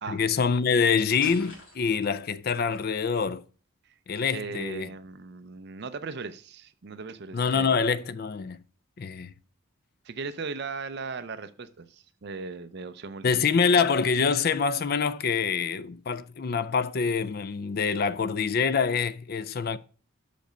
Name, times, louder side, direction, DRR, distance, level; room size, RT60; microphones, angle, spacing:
voice 1, 0.1-3.4 4.1-4.9 7.3-8.6 9.0-9.3 13.2-19.8, left 5 dB, 45° left, 0.4 m, -25 dB
sound 1, 1.2-2.2, left 2 dB, 60° left, 2.7 m, -45 dB
voice 2, 4.3-7.7 10.0-13.5, right 4 dB, 50° right, 0.5 m, -38 dB
6.6 x 5.1 x 5.1 m
head